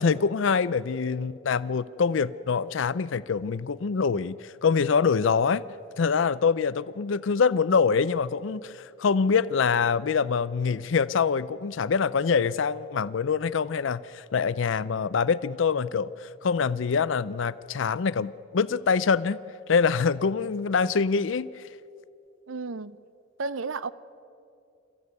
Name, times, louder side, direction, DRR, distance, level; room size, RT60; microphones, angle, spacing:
voice 1, 0.0-5.6 6.0-19.4 19.7-21.6, left 5 dB, 70° left, 0.5 m, -25 dB
voice 2, 22.5-23.0 23.4-23.9, right 4 dB, 75° right, 0.7 m, -32 dB
27.5 x 14.0 x 9.5 m
head